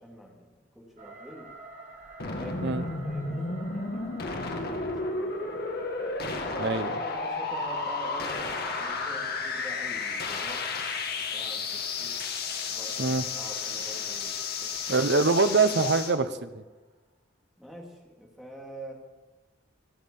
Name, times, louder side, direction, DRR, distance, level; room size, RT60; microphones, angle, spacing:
voice 1, 0.0-1.5 2.3-2.6 3.0-5.7 6.6-8.4 8.7-10.6 11.3-12.2 12.7-15.0 17.6-18.9, equal, ahead, -1 dB, 2.9 m, -46 dB
sound 1, 1.0-17.0, right 2 dB, 40° right, 3.0 m, -50 dB
sound 2, 2.2-16.1, left 4 dB, 55° left, 1.8 m, -32 dB
voice 2, 6.6-6.9 13.0-13.2 14.9-16.6, right 3 dB, 60° right, 11 dB, 0.9 m, -24 dB
24.0 x 8.8 x 5.5 m, 1.2 s
head